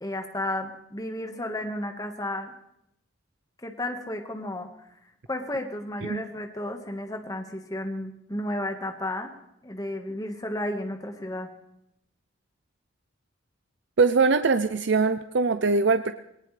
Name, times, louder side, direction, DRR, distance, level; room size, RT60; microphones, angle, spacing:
voice 1, 0.0-2.5 3.6-5.0 5.3-9.3 9.6-11.5, left 1 dB, 20° left, 4 dB, 1.5 m, -33 dB
voice 2, 14.0-16.1, right 4 dB, 60° right, 10 dB, 0.6 m, -22 dB
21.0 x 19.0 x 3.3 m, 0.78 s
head